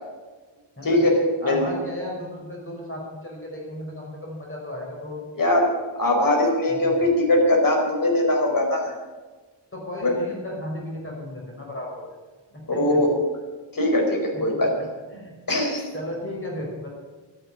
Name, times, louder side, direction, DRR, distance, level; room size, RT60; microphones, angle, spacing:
voice 1, 0.8-1.6 5.4-5.7 6.0-8.9 10.0-10.1 12.8-13.1 13.7-14.7 15.5-15.9, left 1 dB, 45° left, 0 dB, 4.8 m, -21 dB
voice 2, 1.4-5.2 6.7-6.9 9.7-12.0 12.5-13.0 14.3-15.3 15.9-16.9, left 1 dB, 30° left, -2 dB, 5.5 m, -35 dB
12.5 x 10.5 x 9.9 m, 1.3 s
wide cardioid pair, 120°, 45 cm